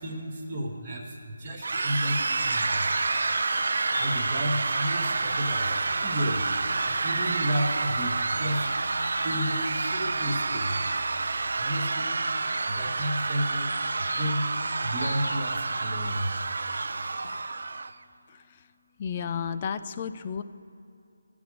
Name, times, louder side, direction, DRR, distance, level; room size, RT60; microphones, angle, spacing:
voice 1, 0.0-2.9 4.0-8.7 9.2-10.8 11.6-12.1 12.7-13.7 14.0-14.5 14.8-16.4, equal, 15° right, -7 dB, 1.0 m, -32 dB
sound 1, 1.6-17.9, right 3 dB, 55° right, 0.5 m, -29 dB
sound 2, 2.3-17.4, left 2 dB, 80° left, 1.1 m, -44 dB
sound 3, 5.1-11.8, left 1 dB, 35° left, 1.7 m, -48 dB
voice 2, 19.0-20.4, left 7 dB, 20° left, 11 dB, 0.4 m, -32 dB
14.0 x 6.1 x 9.6 m, 2.6 s
figure-of-eight pair, 175°, 0 cm